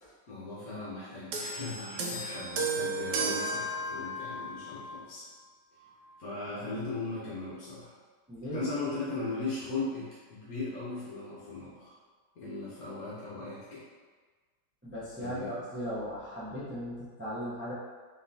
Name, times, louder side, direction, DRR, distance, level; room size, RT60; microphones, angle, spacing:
voice 1, 0.3-5.2 6.2-7.9 8.5-11.9 12.4-13.8 15.2-15.5, left 3 dB, 60° left, -9 dB, 1.3 m, -38 dB
sound 1, 1.3-4.9 5.8-6.0, right 2 dB, 80° right, 1.2 m, -34 dB
voice 2, 8.3-8.6 14.8-17.7, equal, 15° right, -8 dB, 0.4 m, -37 dB
4.0 x 3.8 x 2.8 m, 1.4 s
omnidirectional pair, 1.9 m